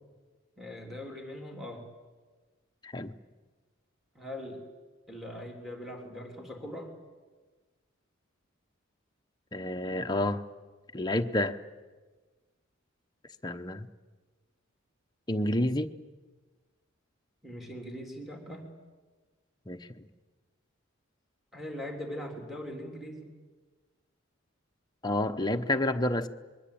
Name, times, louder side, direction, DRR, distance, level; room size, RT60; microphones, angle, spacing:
voice 1, 0.6-1.9 4.2-4.6 5.1-6.9 17.4-18.7 21.5-23.3, left 1 dB, ahead, 3 dB, 3.5 m, -41 dB
voice 2, 2.8-3.1 9.5-10.4 10.9-11.6 13.4-13.9 15.3-15.9 19.7-19.8 25.0-26.3, left 1 dB, 20° left, 6 dB, 0.9 m, -29 dB
26.0 x 22.5 x 8.6 m, 1.3 s
head